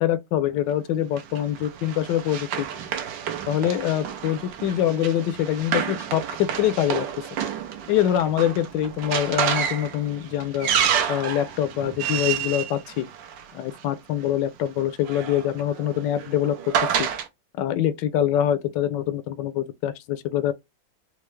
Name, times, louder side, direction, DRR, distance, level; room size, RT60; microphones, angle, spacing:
voice 1, 0.0-2.7 3.5-7.1 7.9-10.7 11.1-13.1 13.5-17.1 17.6-20.5, left 11 dB, 75° left, 1.2 m, -24 dB
Run, 1.2-13.8 14.8-17.3, right 8 dB, 80° right, 1.3 m, -29 dB
4.4 x 2.0 x 3.0 m
omnidirectional pair, 2.0 m